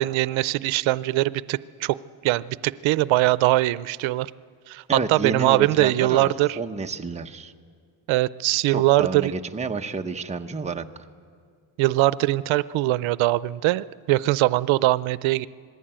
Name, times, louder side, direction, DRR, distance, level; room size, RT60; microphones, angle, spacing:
voice 1, 0.0-2.0 2.2-4.3 4.7-6.6 8.1-9.3 11.8-15.5, right 17 dB, 85° right, 17 dB, 0.6 m, -22 dB
voice 2, 4.9-7.5 8.7-10.8, right 4 dB, 15° right, 4 dB, 0.8 m, -29 dB
27.5 x 20.5 x 8.9 m, 2.1 s
cardioid pair, 145°, 46 cm